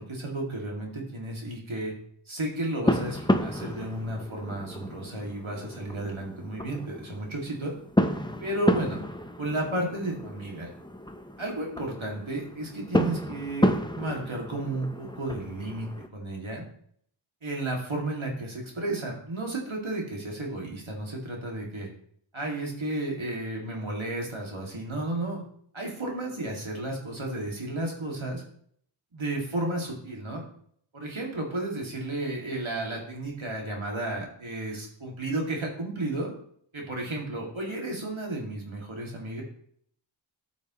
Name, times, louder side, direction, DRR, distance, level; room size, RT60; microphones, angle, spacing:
voice 1, 0.0-1.9 2.3-7.7 8.4-9.0 9.4-10.7 11.4-16.6 17.4-21.9 22.3-25.4 25.7-28.4 29.1-30.4 30.9-36.3 36.7-39.4, right 2 dB, 75° right, 0 dB, 2.6 m, -33 dB
sound 1, 2.8-16.1, left 1 dB, 10° left, 0.8 m, -31 dB
13.0 x 7.1 x 3.1 m, 0.63 s
wide cardioid pair, 55°, 48 cm